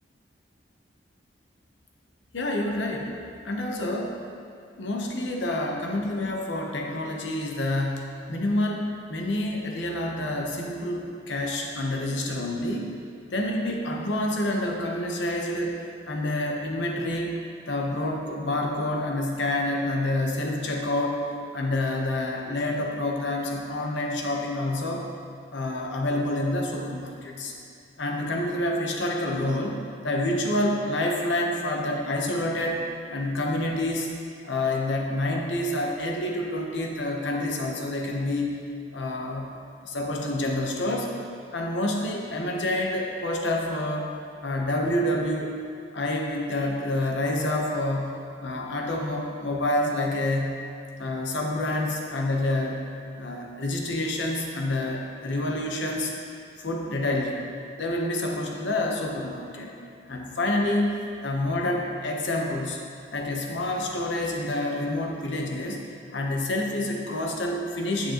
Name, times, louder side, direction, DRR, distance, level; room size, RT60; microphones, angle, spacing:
voice 1, 2.3-3.1 3.4-4.2 4.8-13.0 13.3-15.8 16.1-17.4 17.7-21.2 21.5-25.0 25.5-27.5 28.0-29.8 30.0-32.8 33.1-34.2 34.4-38.6 38.9-39.5 39.8-41.2 41.5-44.1 44.4-45.5 45.9-50.6 51.0-52.9 53.2-56.1 56.6-57.5 57.8-59.7 60.1-60.9 61.2-62.8 63.1-65.8 66.1-68.1, left 1 dB, 70° left, 0 dB, 0.9 m, -28 dB
9.2 x 7.3 x 3.0 m, 2.4 s
head